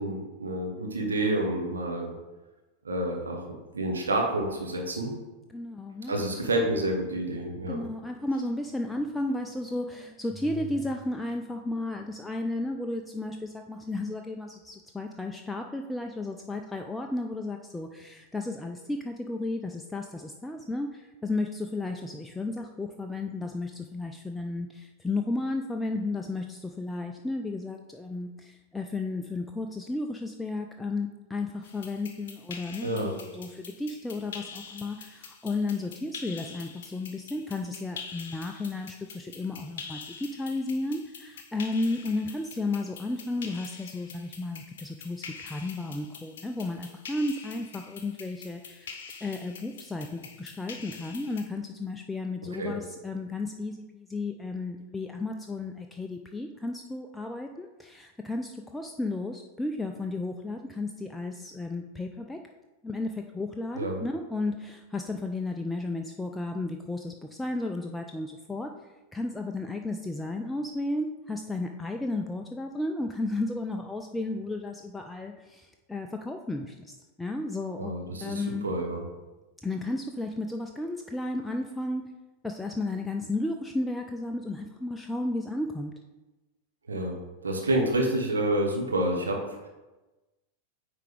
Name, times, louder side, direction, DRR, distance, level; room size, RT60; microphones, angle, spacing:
voice 1, 0.0-2.1 2.8-3.4 3.7-5.1 6.1-7.8 32.8-33.2 52.5-52.7 63.8-64.0 77.8-79.0 86.9-87.2 87.4-89.7, right 1 dB, 75° right, 1 dB, 1.2 m, -28 dB
voice 2, 5.5-6.1 7.7-62.4 62.8-68.7 69.1-76.9 77.2-77.9 78.2-78.7 79.6-82.1 82.4-85.9, left 2 dB, 5° left, 3 dB, 0.4 m, -33 dB
sound 1, 31.6-51.4, left 5 dB, 60° left, 0.7 m, -45 dB
9.1 x 3.4 x 3.4 m, 1.1 s
figure-of-eight pair, 90°, 0 cm